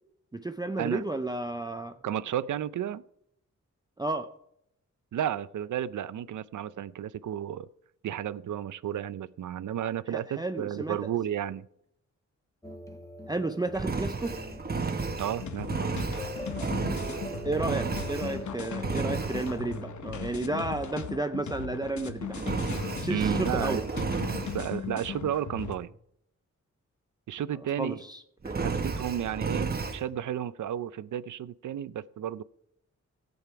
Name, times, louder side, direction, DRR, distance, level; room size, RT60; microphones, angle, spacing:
voice 1, 0.3-2.0 4.0-4.3 10.1-11.0 13.3-14.4 17.4-22.5 23.0-23.9 27.8-28.6, right 2 dB, 15° right, 0.5 m, -32 dB
voice 2, 2.0-3.0 5.1-7.7 8.0-11.7 15.2-16.0 23.1-23.9 24.5-25.9 27.3-28.0 28.6-32.4, right 10 dB, 85° right, 0.5 m, -32 dB
sound 1, 12.6-19.9, right 1 dB, 10° left, 1.1 m, -43 dB
Engine, 13.7-18.5 18.8-19.5 22.4-24.6 28.4-30.0, right 4 dB, 30° right, 1.0 m, -32 dB
sound 2, 15.4-25.8, left 6 dB, 75° left, 1.0 m, -38 dB
15.0 x 8.7 x 4.6 m
wide cardioid pair, 150°, 30 cm